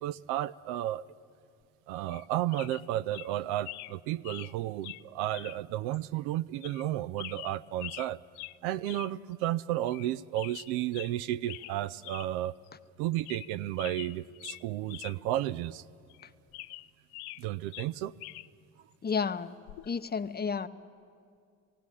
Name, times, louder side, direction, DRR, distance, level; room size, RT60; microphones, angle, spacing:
voice 1, 0.0-1.0 1.9-8.2 8.6-12.5 13.0-15.8 17.4-18.1, right 13 dB, 65° right, 16 dB, 0.6 m, -33 dB
sound 1, 2.1-2.3 2.5-2.8 3.1-3.3 3.6-3.9 4.2-4.5 4.8-5.0 5.3-5.6 5.9-6.0 6.6-6.9 7.2-8.1 8.3-8.6 8.9-9.1 9.4-9.5 9.9-10.1 10.3-11.1 11.5-11.7 12.0-12.3 12.7-12.8 13.1-13.5 13.8-15.1 15.4-15.5 16.1-17.4 17.7-18.5 19.7-19.9, left 18 dB, 60° left, 0.5 m, -44 dB
voice 2, 19.0-19.5 19.9-20.7, left 5 dB, 25° left, 12 dB, 0.8 m, -31 dB
18.0 x 17.0 x 9.8 m, 2.3 s
hypercardioid pair, 60°, 42 cm